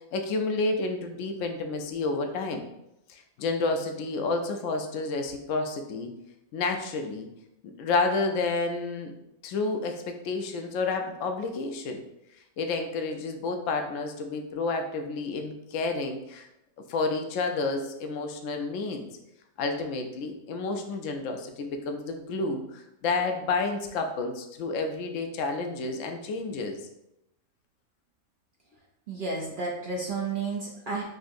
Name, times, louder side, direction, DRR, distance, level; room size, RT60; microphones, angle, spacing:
voice 1, 0.1-2.6 3.1-6.1 6.5-7.3 7.6-9.1 9.4-12.0 12.6-16.5 16.9-19.1 19.6-26.8, left 3 dB, 70° left, 5 dB, 0.9 m, -30 dB
voice 2, 29.1-31.0, right 4 dB, 70° right, -1 dB, 0.5 m, -31 dB
5.2 x 2.7 x 2.5 m, 0.87 s
omnidirectional pair, 1.5 m